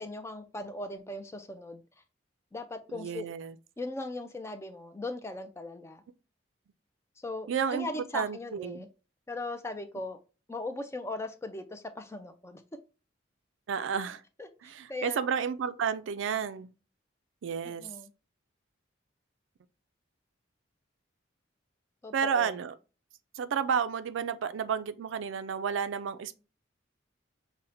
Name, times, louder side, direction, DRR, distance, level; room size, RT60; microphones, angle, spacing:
voice 1, 0.0-2.0 2.5-3.3 3.8-6.0 7.2-8.9 9.3-10.2 10.5-12.6 14.4-15.2 17.6-18.1 22.0-22.5, left 2 dB, 15° left, 0.3 m, -39 dB
voice 2, 2.9-3.5 7.5-7.9 8.1-8.8 13.7-14.2 14.6-16.7 17.4-17.9 22.1-22.7 23.4-26.4, right 7 dB, 80° right, 0.4 m, -31 dB
5.6 x 2.1 x 2.5 m
head